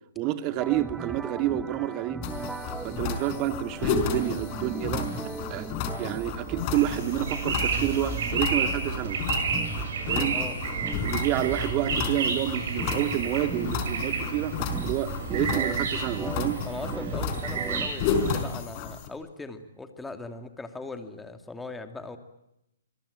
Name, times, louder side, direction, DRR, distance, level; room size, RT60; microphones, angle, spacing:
voice 1, 0.2-2.2 2.8-5.1 5.5-5.7 6.0-9.2 10.1-10.4 11.0-14.6 14.8-16.6, right 13 dB, 30° right, 9 dB, 2.3 m, -29 dB
sound 1, 0.6-18.5, right 4 dB, 10° right, 1.3 m, -38 dB
sound 2, 2.2-19.1, left 6 dB, 35° left, 4.6 m, -33 dB
sound 3, 6.8-18.4, right 5 dB, 55° right, 7.6 m, -31 dB
voice 2, 16.6-22.2, left 3 dB, 5° left, 7 dB, 2.6 m, -39 dB
26.5 x 22.5 x 8.9 m, 0.86 s
hypercardioid pair, 130°, 0 cm